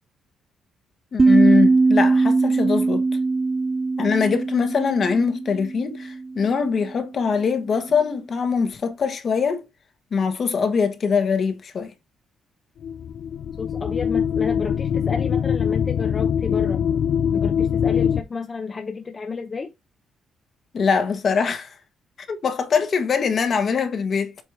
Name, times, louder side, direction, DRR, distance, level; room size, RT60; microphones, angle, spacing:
voice 1, 1.1-3.0 4.0-9.6 10.1-11.9 20.7-21.7 22.3-24.3, left 5 dB, 50° left, 1.3 m, -22 dB
sound 1, 1.2-6.3, right 3 dB, 25° right, 0.3 m, -20 dB
sound 2, 12.8-18.2, left 8 dB, 70° left, 0.4 m, -23 dB
voice 2, 13.6-16.9 17.3-19.7, left 4 dB, 35° left, 0.8 m, -31 dB
7.7 x 3.0 x 4.8 m
cardioid pair, 90°, 0 cm